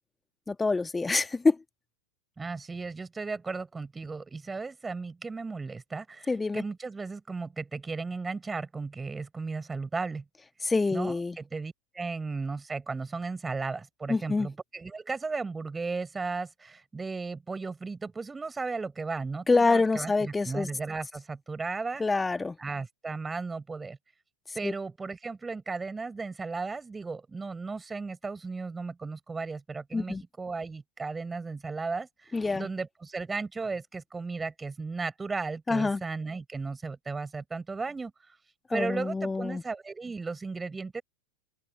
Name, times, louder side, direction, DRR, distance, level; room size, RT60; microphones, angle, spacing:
voice 1, 0.5-1.6 6.3-6.6 10.6-11.4 14.1-14.5 19.5-20.7 22.0-22.6 24.6-24.7 29.9-30.2 32.3-32.7 35.7-36.0 38.7-39.6, left 3 dB, 10° left, 1.8 m, -26 dB
voice 2, 2.4-10.2 10.9-22.0 22.6-24.0 24.5-38.1 38.7-41.0, right 4 dB, 10° right, 6.0 m, -35 dB
figure-of-eight pair, 90°, 0 cm